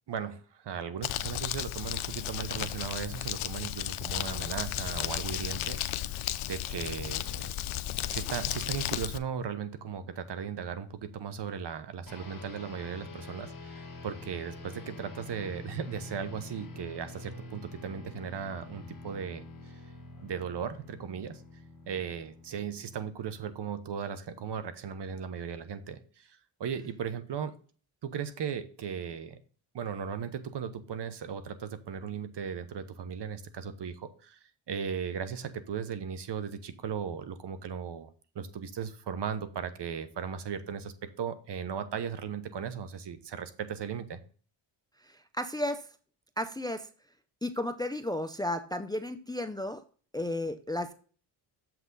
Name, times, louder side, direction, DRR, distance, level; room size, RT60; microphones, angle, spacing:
voice 1, 0.1-5.8 6.5-7.5 8.1-19.5 20.2-21.4 21.9-27.6 28.0-29.4 29.7-34.4 34.7-38.1 38.3-44.2, right 7 dB, 55° right, 11 dB, 1.1 m, -37 dB
Crumpling crinkling, 1.0-9.2, left 13 dB, 70° left, 0.7 m, -34 dB
sound 1, 12.1-23.7, left 2 dB, 40° left, 2.1 m, -46 dB
voice 2, 45.0-45.9 46.4-46.9 47.4-49.8 50.1-50.9, left 1 dB, 10° left, 10 dB, 0.5 m, -33 dB
7.3 x 6.0 x 3.8 m, 0.42 s
cardioid pair, 90°, 50 cm